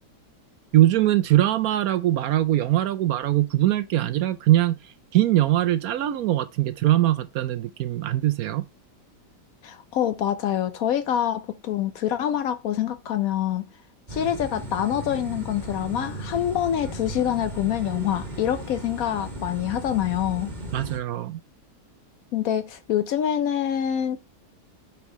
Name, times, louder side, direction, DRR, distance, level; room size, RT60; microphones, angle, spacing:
voice 1, 0.7-4.8 5.1-8.6 20.7-21.4, right 14 dB, 70° right, 0.9 m, -22 dB
voice 2, 9.6-13.6 14.1-20.5 22.3-24.2, left 10 dB, 65° left, 0.9 m, -26 dB
sound 1, 14.1-21.0, right 1 dB, 25° right, 1.7 m, -36 dB
8.4 x 4.6 x 3.0 m
omnidirectional pair, 1.8 m